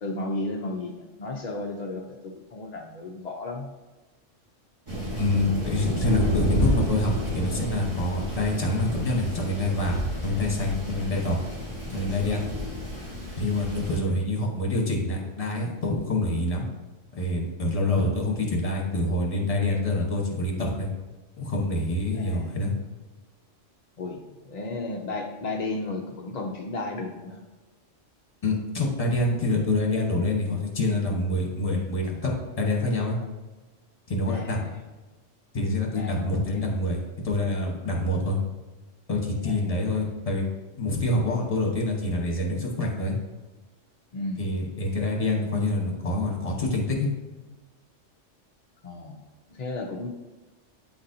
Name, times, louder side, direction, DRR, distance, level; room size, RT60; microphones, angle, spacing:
voice 1, 0.0-3.7 14.1-14.2 22.1-22.5 24.0-27.4 34.3-34.8 35.9-36.6 39.4-39.7 44.1-44.4 48.8-49.2 49.5-50.1, left 2 dB, 55° left, 1 dB, 0.4 m, -34 dB
Thunder, 4.9-14.0, equal, 25° right, 1.1 m, -30 dB
voice 2, 5.1-11.4 11.9-12.4 13.4-16.6 17.1-20.9 21.4-22.7 28.4-33.2 34.1-34.6 35.5-38.4 39.1-40.4 40.8-43.2 44.4-47.1, left 2 dB, 30° left, -1 dB, 1.1 m, -26 dB
8.7 x 4.1 x 2.6 m, 1.2 s
omnidirectional pair, 1.3 m